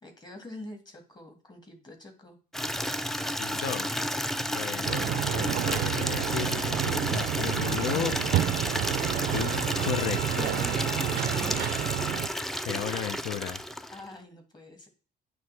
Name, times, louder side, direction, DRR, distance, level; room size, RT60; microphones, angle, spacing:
voice 1, 0.0-2.4 4.4-5.2 10.4-11.8 13.9-14.9, left 2 dB, 25° left, 4 dB, 1.9 m, -45 dB
Water tap faucet / Liquid, 2.5-14.1, equal, ahead, 0.3 m, -32 dB
voice 2, 3.4-3.9 4.5-5.1 5.3-8.2 9.3-10.5 12.7-13.6, left 10 dB, 80° left, 10 dB, 0.6 m, -34 dB
sound 1, 4.8-12.3, right 14 dB, 65° right, 0.4 m, -30 dB
Wind instrument woodwind instrument, 7.4-12.6, left 1 dB, 45° left, 2.6 m, -42 dB
9.2 x 3.2 x 3.3 m, 0.36 s
cardioid pair, 110°, 17 cm